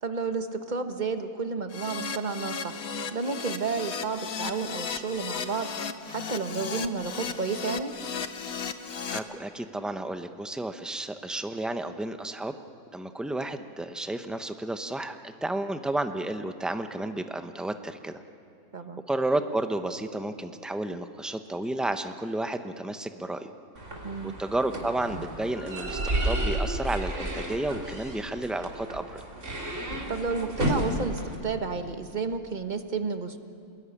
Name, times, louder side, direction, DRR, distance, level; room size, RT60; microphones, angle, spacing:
voice 1, 0.0-2.8 3.1-5.7 6.1-7.9 18.7-19.0 24.0-24.4 30.1-33.4, right 4 dB, 35° right, 7 dB, 1.3 m, -31 dB
Keyboard (musical), 1.7-9.2, left 6 dB, 75° left, 1.5 m, -35 dB
voice 2, 9.1-12.5 12.9-18.2 19.1-23.5 24.2-29.2, right 2 dB, ahead, 8 dB, 0.6 m, -32 dB
sound 1, 23.8-31.4, right 1 dB, 55° right, 3.5 m, -32 dB
27.0 x 20.5 x 10.0 m, 2.5 s
omnidirectional pair, 1.6 m